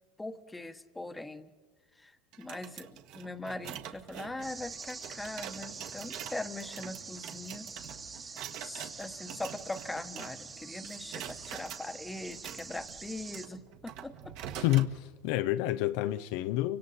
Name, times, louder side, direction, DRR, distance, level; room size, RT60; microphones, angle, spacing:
voice 1, 0.2-1.5 2.0-2.1 2.4-7.7 8.6-14.3, left 2 dB, 10° left, 1.2 m, -41 dB
sound 1, 2.3-10.6 10.8-11.8 12.3-14.9, right 11 dB, 55° right, 1.7 m, -45 dB
sound 2, 4.4-13.5, right 4 dB, 20° right, 1.3 m, -45 dB
voice 2, 14.6-16.8, left 14 dB, 65° left, 0.6 m, -29 dB
30.0 x 25.0 x 4.2 m
supercardioid pair, 135°, 0 cm